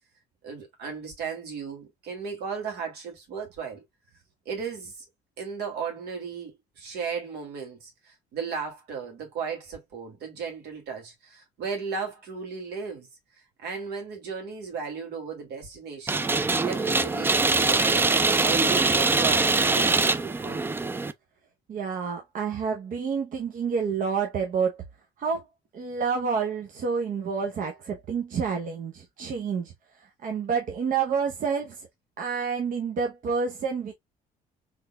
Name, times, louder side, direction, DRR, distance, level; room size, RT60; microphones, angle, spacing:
voice 1, 0.4-3.8 4.5-5.0 5.4-13.1 13.6-16.2 16.6-20.6, right 5 dB, 75° right, 2.1 m, -35 dB
sound 1, 16.1-21.1, right 3 dB, 15° right, 0.3 m, -23 dB
voice 2, 21.7-24.8 25.2-25.4 25.7-31.9 32.2-33.9, right 6 dB, 55° right, 0.8 m, -29 dB
3.9 x 3.5 x 2.2 m
cardioid pair, 110°, 17 cm